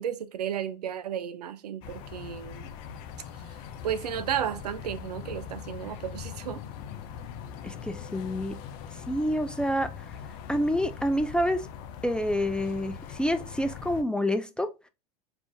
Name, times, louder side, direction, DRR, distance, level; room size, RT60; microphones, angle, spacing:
voice 1, 0.0-2.8 3.8-6.6, right 9 dB, 85° right, 0.5 m, -33 dB
sound 1, 1.8-14.0, left 8 dB, 55° left, 0.6 m, -41 dB
voice 2, 7.6-8.6 9.1-9.9 10.5-11.6 12.0-14.9, equal, 5° left, 0.3 m, -28 dB
3.5 x 2.5 x 3.3 m
hypercardioid pair, 90°, 20 cm